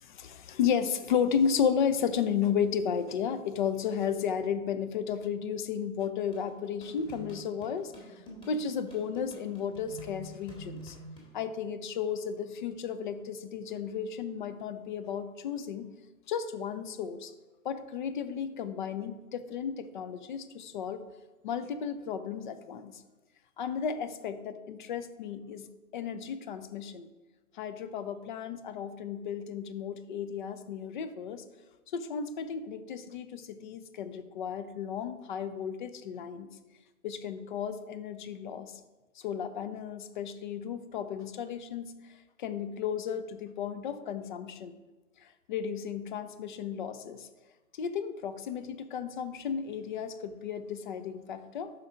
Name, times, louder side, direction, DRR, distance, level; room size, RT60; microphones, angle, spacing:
voice 1, 0.0-8.2 8.5-11.0 11.3-15.9 16.3-17.3 17.6-21.0 21.4-23.0 23.6-25.7 25.9-27.1 27.5-31.4 31.9-36.5 37.0-38.8 39.2-41.9 42.4-44.7 45.2-47.3 47.7-51.7, left 7 dB, 35° left, 12 dB, 0.5 m, -33 dB
sound 1, 6.3-11.3, right 1 dB, 10° left, 1.7 m, -47 dB
11.5 x 4.5 x 3.6 m, 1.1 s
figure-of-eight pair, 115°, 43 cm